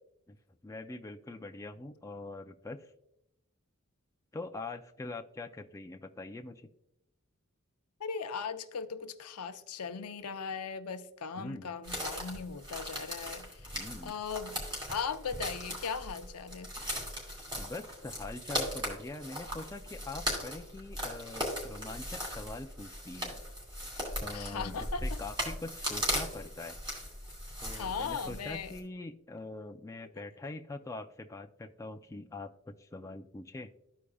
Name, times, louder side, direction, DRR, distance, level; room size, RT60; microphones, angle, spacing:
voice 1, 0.6-2.9 4.3-6.7 11.4-11.7 13.7-14.2 17.6-23.4 24.2-26.8 27.6-33.7, left 2 dB, 15° left, 0.3 m, -43 dB
voice 2, 8.0-13.7 14.0-14.6 14.9-16.7 24.3-25.0 27.7-28.7, left 5 dB, 80° left, 0.6 m, -38 dB
sound 1, 11.8-28.8, equal, 20° right, 2.5 m, -38 dB
14.0 x 4.8 x 2.3 m
head